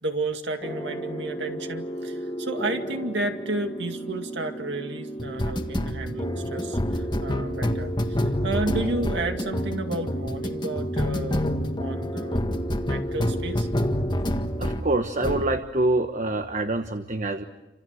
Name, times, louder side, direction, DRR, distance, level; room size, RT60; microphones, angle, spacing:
voice 1, 0.0-12.4 12.8-13.7, right 2 dB, 65° right, 5 dB, 2.3 m, -32 dB
sound 1, 0.6-14.9 15.2-15.5, equal, 25° left, 1.6 m, -28 dB
voice 2, 14.6-17.4, right 2 dB, 40° right, 7 dB, 1.2 m, -25 dB
29.5 x 27.0 x 6.4 m, 1.0 s
head